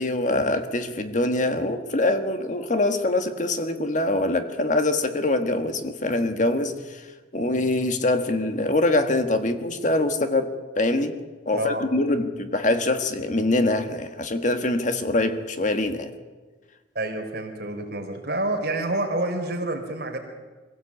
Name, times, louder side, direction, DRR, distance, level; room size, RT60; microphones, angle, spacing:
voice 1, 0.0-7.1 7.3-11.2 11.4-16.1, left 2 dB, 40° left, 1.5 m, -24 dB
voice 2, 11.5-11.9 16.9-20.2, right 2 dB, 55° right, 3.8 m, -28 dB
23.5 x 16.5 x 8.4 m
head